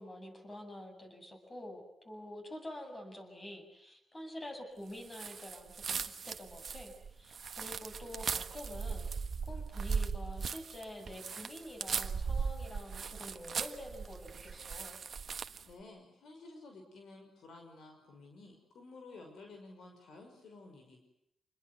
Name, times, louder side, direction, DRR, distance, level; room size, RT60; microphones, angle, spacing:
voice 1, 0.0-9.1 9.5-15.0, left 1 dB, 25° left, 4 dB, 7.9 m, -47 dB
sound 1, 5.1-15.7, right 5 dB, 50° right, 1.3 m, -38 dB
voice 2, 15.6-21.0, left 3 dB, 75° left, 3 dB, 5.8 m, -53 dB
27.5 x 21.5 x 9.5 m, 0.79 s
cardioid pair, 100°, 0 cm